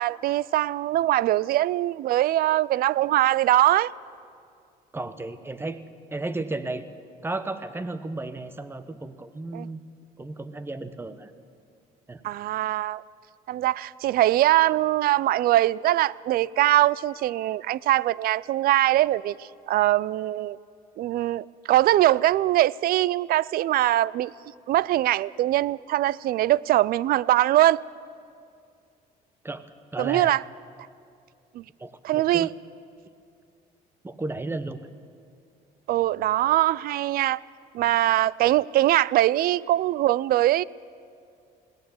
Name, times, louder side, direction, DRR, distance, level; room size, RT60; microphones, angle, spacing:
voice 1, 0.0-3.9 9.5-9.7 12.2-13.0 13.5-20.6 21.0-24.3 24.7-27.8 30.0-30.4 31.6-31.7 32.0-32.5 35.9-37.4 37.7-40.6, right 14 dB, 60° right, 0.4 m, -22 dB
voice 2, 4.9-5.8 6.1-6.8 7.2-9.8 10.2-11.3 12.1-12.2 29.4-29.6 29.9-30.3 31.8-32.5 34.0-34.9, right 2 dB, 15° right, 1.0 m, -33 dB
21.0 x 17.5 x 7.2 m
cardioid pair, 110°, 17 cm